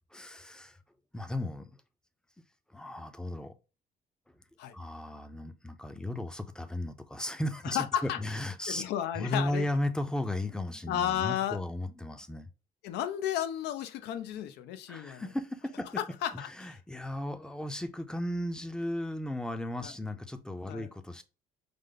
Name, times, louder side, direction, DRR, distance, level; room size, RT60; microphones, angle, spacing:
voice 1, 0.1-0.8 1.1-1.7 2.7-3.5 4.7-8.8 9.2-12.5 14.9-16.0 16.3-21.2, left 1 dB, 5° left, 0.5 m, -35 dB
voice 2, 7.6-8.2 8.7-9.7 10.9-11.6 12.8-15.2 16.0-16.7 19.8-19.9 20.7-20.9, left 10 dB, 80° left, 0.6 m, -33 dB
5.0 x 2.1 x 3.8 m
cardioid pair, 110°, 17 cm